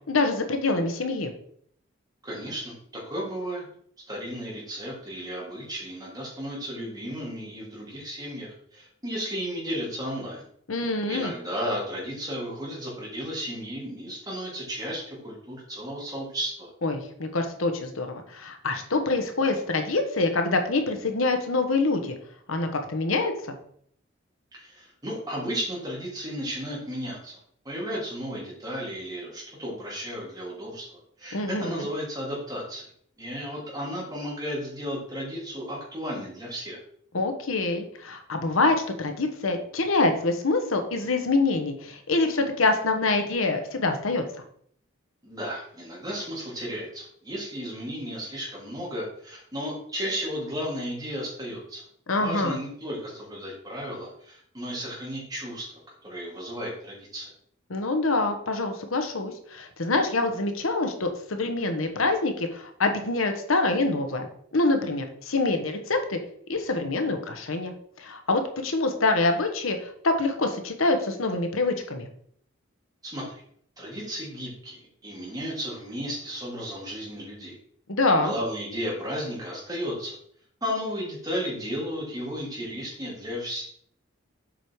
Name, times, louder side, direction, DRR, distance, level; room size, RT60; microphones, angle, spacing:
voice 1, 0.1-1.3 10.7-11.3 16.8-22.2 22.5-23.5 31.3-31.9 37.1-44.2 52.1-52.6 57.7-64.3 64.5-66.2 66.5-72.1 77.9-78.4, left 3 dB, 80° left, 6 dB, 1.1 m, -25 dB
voice 2, 2.2-3.6 4.1-10.4 11.1-16.7 24.6-27.4 27.6-32.9 33.2-36.8 45.2-51.8 52.2-57.3 73.0-73.4 73.8-77.6 78.2-80.1 80.6-83.6, equal, 20° right, -5 dB, 3.1 m, -34 dB
7.6 x 5.0 x 4.7 m, 0.63 s
head